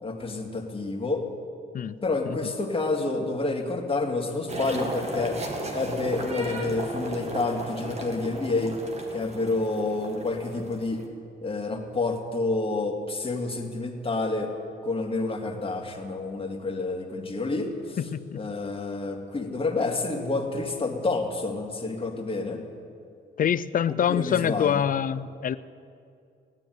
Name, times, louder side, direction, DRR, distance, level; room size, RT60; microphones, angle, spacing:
voice 1, 0.0-1.3 2.0-5.4 5.7-8.8 9.1-11.0 11.4-14.5 14.8-18.0 18.3-22.6 24.1-24.8, left 3 dB, 30° left, 2 dB, 2.3 m, -29 dB
sound 1, 4.5-11.1, right 1 dB, 35° right, 2.2 m, -35 dB
voice 2, 18.0-18.4 23.4-25.6, left 9 dB, 45° left, 16 dB, 0.5 m, -25 dB
16.0 x 9.8 x 9.3 m, 2.4 s
cardioid pair, 90°, 20 cm